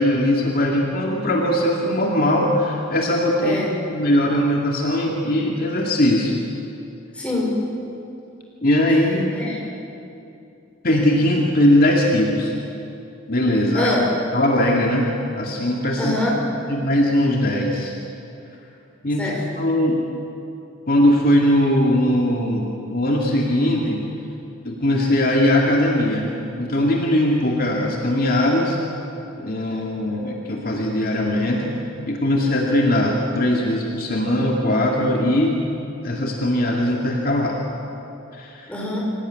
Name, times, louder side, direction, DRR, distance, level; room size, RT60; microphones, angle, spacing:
voice 1, 0.0-3.6 3.9-6.4 8.6-9.3 10.8-12.5 13.3-13.9 14.3-15.1 15.3-16.1 16.7-17.9 19.0-19.3 19.6-20.0 20.9-24.0 24.6-26.3 26.6-28.8 29.4-31.7 32.1-35.6 36.0-37.6 38.3-38.7, left 1 dB, 45° left, -1 dB, 2.4 m, -20 dB
voice 2, 7.1-7.6 9.3-9.7 13.7-14.1 16.0-16.4 19.2-19.4 34.2-34.3 38.7-39.0, left 1 dB, 5° left, -4 dB, 5.8 m, -24 dB
26.0 x 17.5 x 9.5 m, 2.7 s
head